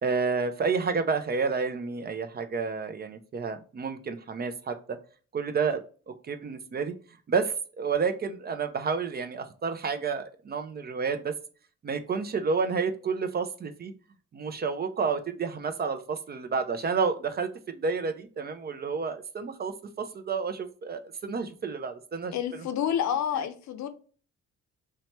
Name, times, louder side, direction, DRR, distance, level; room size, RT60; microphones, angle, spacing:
voice 1, 0.0-5.0 5.3-5.8 6.1-6.9 7.3-11.3 11.8-13.9 14.3-22.3, right 5 dB, 35° right, 0.4 m, -30 dB
voice 2, 22.3-23.9, left 9 dB, 65° left, 0.6 m, -29 dB
2.8 x 2.2 x 2.9 m
cardioid pair, 90°, 30 cm